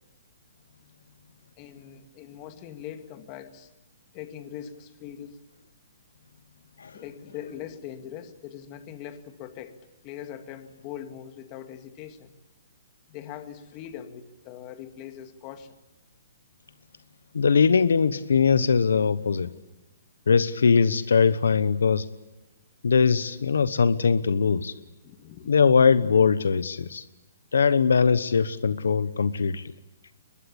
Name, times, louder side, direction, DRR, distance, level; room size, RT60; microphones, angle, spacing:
voice 1, 1.6-3.7 4.1-5.4 6.9-12.3 13.1-15.8 25.0-25.5, left 10 dB, 30° left, 8 dB, 2.1 m, -41 dB
voice 2, 17.3-19.5 20.3-22.0 22.8-24.7 25.5-27.0 27.5-29.7, left 5 dB, 85° left, 14 dB, 1.1 m, -21 dB
23.5 x 21.5 x 8.7 m, 1.0 s
hypercardioid pair, 150°, 0 cm